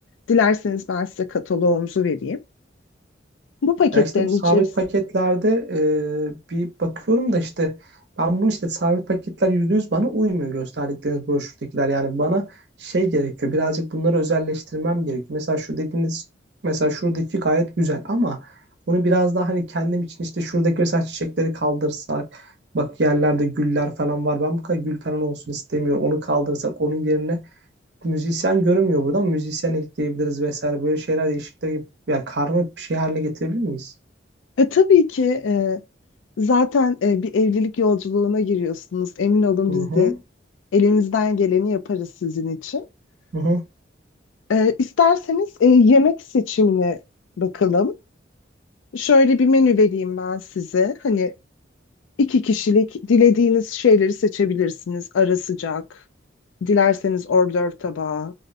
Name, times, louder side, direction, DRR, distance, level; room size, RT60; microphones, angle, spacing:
voice 1, 0.3-2.4 3.6-4.6 34.6-35.8 36.4-40.1 40.7-42.8 44.5-47.0 47.4-47.9 48.9-51.3 52.2-55.8 56.6-58.3, left 5 dB, 85° left, 0.4 m, -19 dB
voice 2, 3.9-7.8 8.2-12.5 12.8-16.2 16.6-18.4 18.9-22.4 22.7-27.4 28.0-33.9 39.7-40.2 43.3-43.6, right 1 dB, 60° right, 0.7 m, -23 dB
2.6 x 2.0 x 2.5 m
head